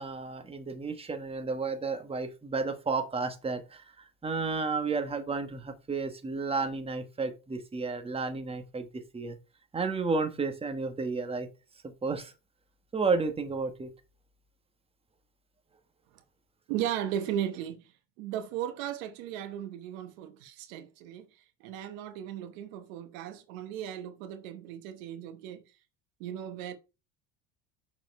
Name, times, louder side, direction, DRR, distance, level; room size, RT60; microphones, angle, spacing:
voice 1, 0.0-8.9 9.1-9.4 9.7-11.5 11.8-12.3 12.9-13.9, right 4 dB, 15° right, 1.1 m, -32 dB
voice 2, 16.7-17.8 18.2-21.3 21.6-25.6 26.2-26.7, right 10 dB, 85° right, 1.1 m, -36 dB
6.7 x 4.2 x 5.2 m
supercardioid pair, 115°, 40 cm